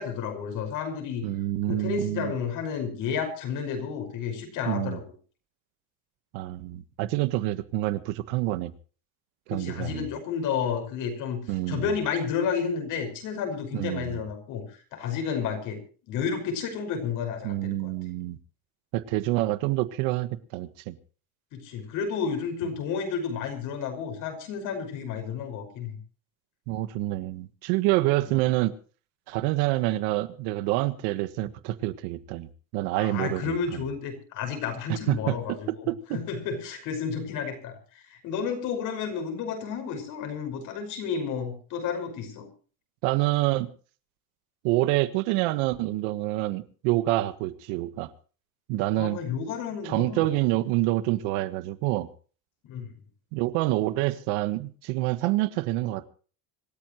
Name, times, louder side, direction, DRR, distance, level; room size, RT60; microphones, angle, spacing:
voice 1, 0.0-1.2 1.7-5.0 9.5-11.4 11.7-14.6 14.9-17.9 21.5-26.0 28.3-28.4 33.0-42.5 49.0-50.3 52.7-52.9, left 6 dB, 50° left, 5.7 m, -31 dB
voice 2, 1.2-2.3 4.6-5.0 6.3-8.7 9.5-10.1 11.5-11.9 13.7-14.2 17.4-18.4 18.9-20.9 26.7-28.7 29.3-33.8 34.9-36.2 43.0-43.7 44.6-48.1 48.7-49.2 49.8-52.1 53.3-56.1, right 17 dB, 75° right, 1.5 m, -27 dB
26.0 x 14.0 x 3.1 m
cardioid pair, 165°, 41 cm